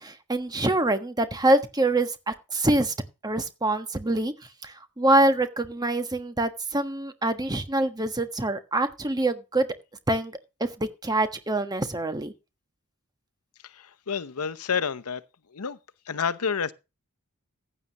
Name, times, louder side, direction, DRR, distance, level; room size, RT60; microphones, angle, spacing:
voice 1, 0.0-2.9 3.2-4.3 4.6-9.7 10.1-10.3 10.6-12.3, right 2 dB, 20° right, 1.3 m, -25 dB
voice 2, 13.6-15.2 15.5-15.8 16.1-16.7, left 6 dB, 85° left, 0.8 m, -29 dB
15.0 x 9.6 x 2.9 m
head